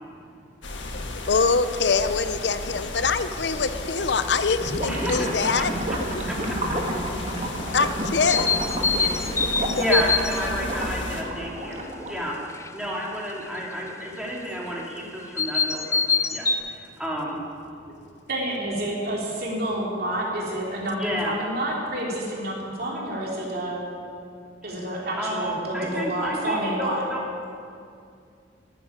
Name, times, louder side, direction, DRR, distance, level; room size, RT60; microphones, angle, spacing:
sound 1, 0.6-11.2, left 2 dB, 85° left, 1.6 m, -35 dB
voice 1, 1.3-5.7 6.4-6.5 7.7-8.5 9.6-10.0 17.9-18.0, left 4 dB, 70° left, 12 dB, 0.7 m, -24 dB
Gurgling / Liquid, 4.6-12.3, right 1 dB, 35° right, 1.7 m, -30 dB
voice 2, 4.9-5.3 6.3-6.6 7.1-7.2 8.9-9.2 9.8-16.0 16.3-17.4 21.0-21.3 25.2-27.2, equal, 5° right, -3 dB, 2.6 m, -31 dB
sound 2, 8.3-10.5 12.5-12.7 15.4-16.6, left 5 dB, 15° left, 0.5 m, -24 dB
voice 3, 18.3-23.8 24.6-27.0, right 1 dB, 55° right, -3 dB, 3.3 m, -29 dB
11.5 x 10.0 x 9.7 m, 2.4 s
head